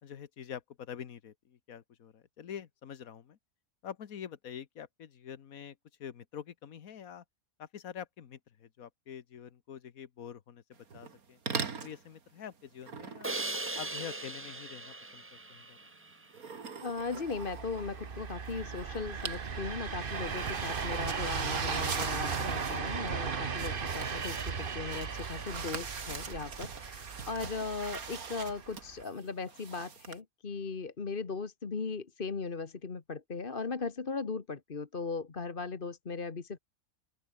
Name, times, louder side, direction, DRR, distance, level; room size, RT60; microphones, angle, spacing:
voice 1, 0.0-3.4 3.8-5.7 6.0-7.2 7.6-10.6 10.9-11.4 11.8-13.4 13.7-15.8, left 8 dB, 80° left, 1.6 m, -46 dB
sound 1, 10.9-11.2 11.5-12.0 12.8-14.5 16.3-18.5 18.8-19.5 19.7-30.2, right 5 dB, 90° right, 2.5 m, -42 dB
Crash cymbal, 13.2-16.3, right 2 dB, 20° right, 0.3 m, -39 dB
voice 2, 16.8-36.6, left 4 dB, 40° left, 1.6 m, -38 dB
sound 2, 17.1-29.0, right 6 dB, 40° right, 1.3 m, -37 dB
open air
omnidirectional pair, 1.5 m